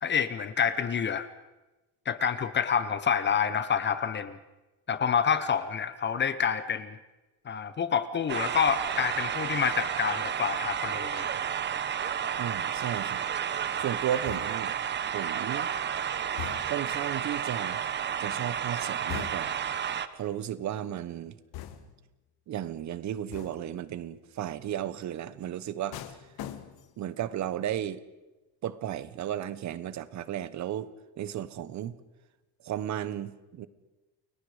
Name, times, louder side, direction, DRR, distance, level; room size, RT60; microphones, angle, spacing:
voice 1, 0.0-1.3 2.1-4.4 4.9-7.0 7.5-11.3, left 7 dB, 30° left, 0.8 m, -28 dB
sound 1, 8.3-20.1, right 8 dB, 30° right, 0.8 m, -31 dB
voice 2, 12.4-13.2 13.8-14.7 15.1-15.7 16.6-17.8 18.2-19.5 20.1-21.4 22.5-26.2 27.0-28.0 28.6-31.9 32.6-33.7, right 11 dB, 50° right, 1.2 m, -34 dB
sound 2, 14.2-14.8 16.4-17.0 19.1-19.7 21.5-22.1 23.3-23.8 25.9-27.0 27.4-27.8, left 11 dB, 75° left, 1.9 m, -42 dB
30.0 x 21.5 x 5.0 m
cardioid pair, 175°, 37 cm